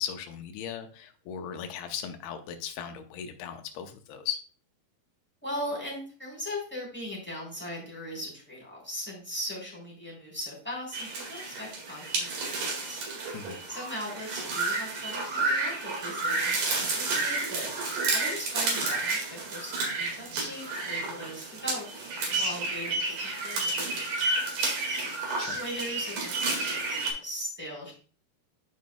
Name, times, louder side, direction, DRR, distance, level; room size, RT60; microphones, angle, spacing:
voice 1, 0.0-4.4 13.3-13.6 25.4-25.6, left 8 dB, 85° left, 6 dB, 2.7 m, -37 dB
voice 2, 5.4-13.0 13.7-17.7 18.1-24.0 25.5-27.9, equal, 5° left, -4 dB, 2.9 m, -39 dB
sound 1, 10.9-27.1, right 3 dB, 60° right, 3.4 m, -31 dB
11.0 x 5.2 x 2.2 m, 0.41 s
omnidirectional pair, 4.4 m